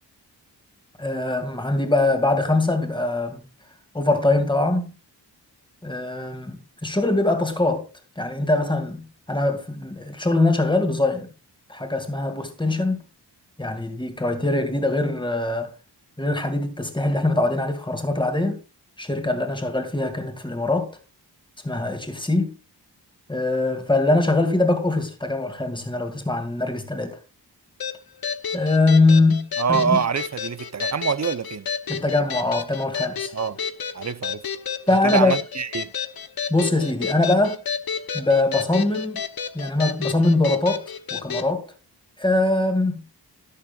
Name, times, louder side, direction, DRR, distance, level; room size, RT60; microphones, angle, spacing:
voice 1, 1.0-3.4 3.9-4.9 5.8-7.9 8.2-11.3 11.7-13.0 13.6-15.7 16.2-18.6 19.0-21.0 21.6-22.5 23.3-27.2 28.5-30.0 31.9-33.3 34.9-35.3 36.5-37.6 38.1-39.2 39.5-40.8 41.1-41.7 42.2-43.0, left 2 dB, 10° left, 2.5 m, -22 dB
sound 1, 27.8-41.5, left 7 dB, 60° left, 1.0 m, -31 dB
voice 2, 29.6-31.7 33.3-33.6 33.9-34.4 34.9-35.9, right 6 dB, 40° right, 0.7 m, -25 dB
12.5 x 12.0 x 2.4 m
wide cardioid pair, 110°, 41 cm